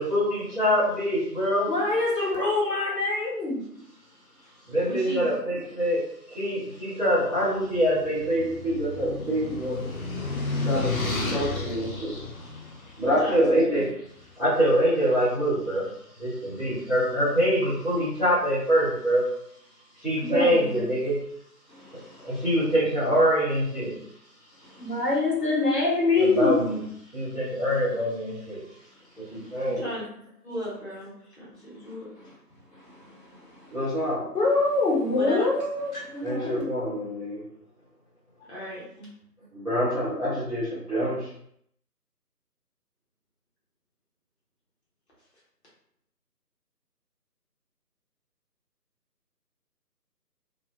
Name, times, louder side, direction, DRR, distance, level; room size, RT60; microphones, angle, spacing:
voice 1, 0.0-1.7 4.7-9.9 10.6-10.9 11.3-12.1 13.0-13.9 14.4-15.9 16.2-19.3 20.0-21.2 22.2-24.0 26.2-26.8 27.1-28.6 29.2-29.8 33.7-34.3 36.2-37.4 39.5-41.3, equal, ahead, -17 dB, 0.6 m, -25 dB
voice 2, 1.7-3.6 20.2-20.8 21.8-22.4 24.7-26.5 31.8-31.9 32.2-32.3 32.7-33.8 34.3-36.6, left 3 dB, 80° left, -5 dB, 1.4 m, -25 dB
voice 3, 4.8-5.3 13.2-13.4 29.6-30.0 30.4-32.1 35.1-35.4 38.5-39.1, equal, 40° left, -7 dB, 1.1 m, -35 dB
sound 1, 7.6-13.9, left 3 dB, 60° left, 0.6 m, -32 dB
2.5 x 2.1 x 2.3 m, 0.70 s
figure-of-eight pair, 155°, 48 cm